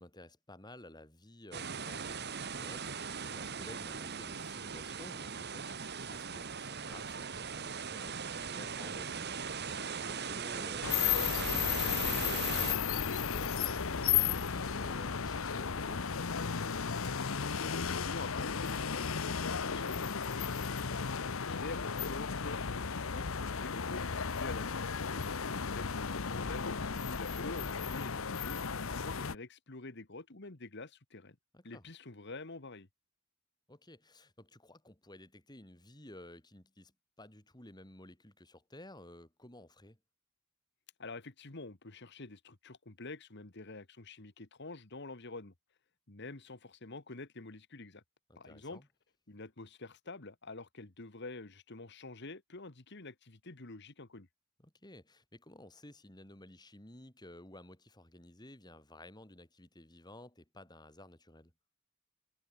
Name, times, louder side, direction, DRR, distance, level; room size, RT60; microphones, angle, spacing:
voice 1, 0.0-16.1 31.5-31.9 33.7-40.0 48.3-48.9 54.6-61.5, left 1 dB, 20° left, 3.6 m, -54 dB
sound 1, 1.5-12.7, right 6 dB, 50° right, 1.8 m, -39 dB
sound 2, 10.8-29.4, left 7 dB, 70° left, 0.9 m, -34 dB
voice 2, 17.0-24.7 25.5-31.4 31.6-32.9 41.0-45.5 46.1-48.0 48.3-48.8 49.3-54.3, left 3 dB, 55° left, 1.7 m, -47 dB
head